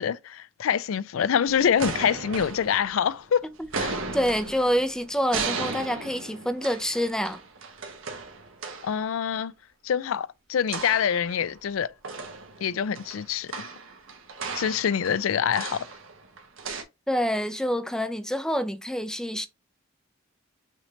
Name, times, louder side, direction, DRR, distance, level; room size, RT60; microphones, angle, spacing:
voice 1, 0.0-3.5 3.7-4.0 8.8-9.5 9.8-11.9 12.6-13.7 14.5-15.8, left 8 dB, 80° left, 0.4 m, -25 dB
sound 1, 1.4-3.3 3.6-9.0 10.7-11.7 12.0-16.8, right 4 dB, 75° right, 1.2 m, -36 dB
voice 2, 4.1-7.4 17.1-19.5, equal, 5° left, 0.4 m, -27 dB
5.9 x 3.2 x 2.8 m
head